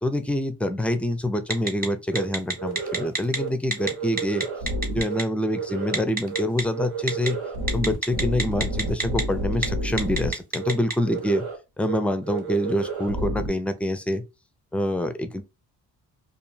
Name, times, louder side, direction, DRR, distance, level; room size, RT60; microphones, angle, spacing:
voice 1, 0.0-4.5 4.9-7.4 7.7-11.5 11.8-14.2 14.7-15.4, left 1 dB, 5° left, 0.4 m, -26 dB
Telephone, 1.5-1.9 2.1-3.4 3.7-3.9 4.2-5.2 5.9-6.6 7.1-7.3 7.7-9.2 9.5-9.7 10.0-10.9, right 2 dB, 20° right, 0.8 m, -26 dB
sound 1, 2.1-2.2 2.6-3.1 3.3-3.5 3.8-5.2 5.5-6.0 6.3-6.4 6.7-10.3 10.6-10.7 11.0-11.6 11.8-12.0 12.2-13.5, right 2 dB, 80° right, 1.0 m, -30 dB
2.3 x 2.2 x 3.1 m
cardioid pair, 70°, 40 cm